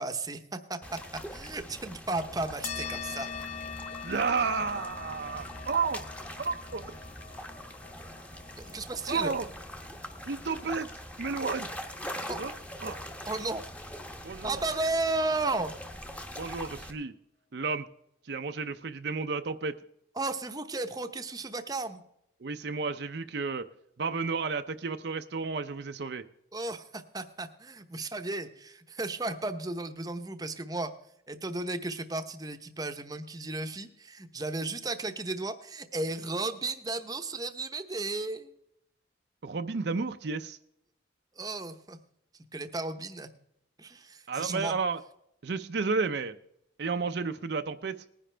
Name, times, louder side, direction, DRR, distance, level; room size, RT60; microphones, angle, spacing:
voice 1, 0.0-3.3 8.6-9.3 12.3-12.4 13.3-13.6 14.4-15.7 20.2-22.0 26.5-30.9 31.3-38.5 41.4-42.0 42.5-43.3 43.8-44.7, right 2 dB, 20° right, 8 dB, 0.8 m, -34 dB
sound 1, 0.8-16.9, equal, 5° left, 0.9 m, -43 dB
sound 2, 2.6-11.5, left 7 dB, 35° left, 0.4 m, -43 dB
voice 2, 4.0-6.0 6.4-6.9 9.1-9.5 10.3-10.9 11.2-11.7 12.3-12.5 12.8-13.0 14.2-14.6 16.4-17.1 17.5-17.9 18.3-19.7 22.4-23.7 24.0-26.2 39.4-40.6 44.3-45.0 45.4-46.4 46.8-48.0, right 4 dB, 60° right, 8 dB, 0.5 m, -32 dB
19.5 x 10.0 x 3.3 m, 0.77 s
head